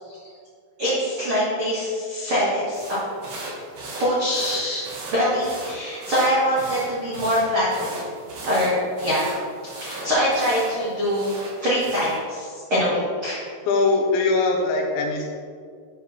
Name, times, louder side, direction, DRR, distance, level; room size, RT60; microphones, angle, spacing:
voice 1, 0.8-3.0 4.0-4.8 5.1-7.9 8.4-9.2 9.7-13.4, equal, 70° right, -9 dB, 1.2 m, -23 dB
sound 1, 2.7-12.2, right 2 dB, 50° right, 3.1 m, -37 dB
voice 2, 13.7-15.2, left 3 dB, 80° left, 1 dB, 3.3 m, -21 dB
9.4 x 3.8 x 5.8 m, 2.1 s
omnidirectional pair, 5.3 m